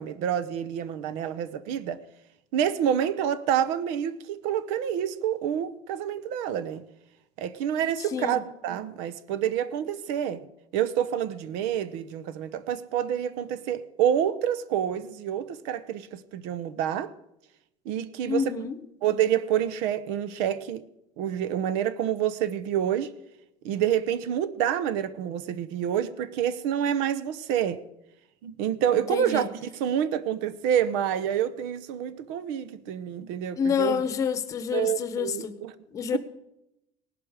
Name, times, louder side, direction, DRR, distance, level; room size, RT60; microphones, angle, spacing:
voice 1, 0.0-2.0 2.5-6.8 7.4-10.4 10.7-17.1 17.9-18.5 19.0-20.8 21.2-23.1 23.6-27.8 28.4-34.0 34.7-35.7 36.1-36.2, right 9 dB, 70° right, 0.9 m, -28 dB
voice 2, 18.3-18.8 29.1-29.5 33.6-35.6 35.9-36.2, left 7 dB, 25° left, 1.0 m, -28 dB
18.5 x 12.0 x 5.0 m
cardioid pair, 175°, 13 cm